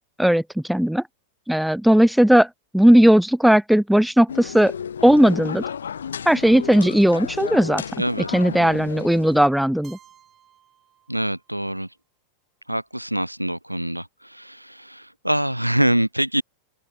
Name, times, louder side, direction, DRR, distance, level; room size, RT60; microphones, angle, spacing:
voice 1, 0.7-1.0 1.5-2.5 2.7-4.7 5.0-5.6 6.3-7.8 8.3-10.0, equal, ahead, 0.5 m, -16 dB
sound 1, 4.3-9.5, left 7 dB, 70° left, 0.5 m, -33 dB
voice 2, 8.0-8.3 11.1-11.9 12.7-16.4, right 1 dB, 90° right, 1.5 m, -24 dB
Keyboard (musical), 9.8-11.8, right 10 dB, 25° right, 7.4 m, -55 dB
open air
figure-of-eight pair, 90°, 0 cm